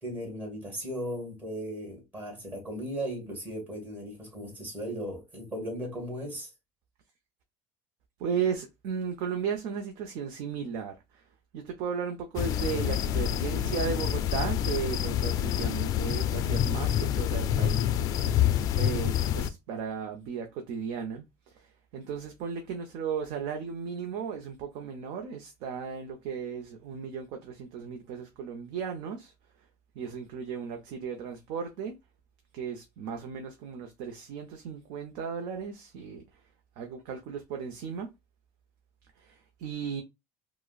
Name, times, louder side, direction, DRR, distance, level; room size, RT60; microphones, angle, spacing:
voice 1, 0.0-6.5, equal, 20° right, 1.9 m, -37 dB
voice 2, 8.2-11.2 11.5-18.0 18.8-21.2 21.5-21.7 21.9-29.3 30.0-31.9 32.5-36.2 36.8-38.1 39.2-40.0, right 6 dB, 70° right, 0.6 m, -35 dB
sound 1, 12.4-19.5, left 10 dB, 50° left, 0.3 m, -27 dB
4.7 x 2.1 x 2.3 m
cardioid pair, 135°, 8 cm